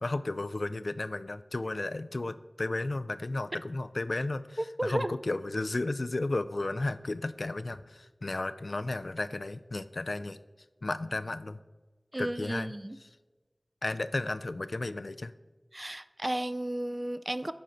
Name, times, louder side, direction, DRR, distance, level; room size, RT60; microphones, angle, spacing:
voice 1, 0.0-10.4 10.8-11.6 12.2-12.7 13.8-15.3, left 2 dB, 75° left, 13 dB, 0.3 m, -33 dB
voice 2, 4.8-5.1 12.1-13.0 15.7-17.5, right 1 dB, 30° right, 12 dB, 0.4 m, -33 dB
11.0 x 4.4 x 3.9 m, 1.2 s
wide cardioid pair, 50°, 0 cm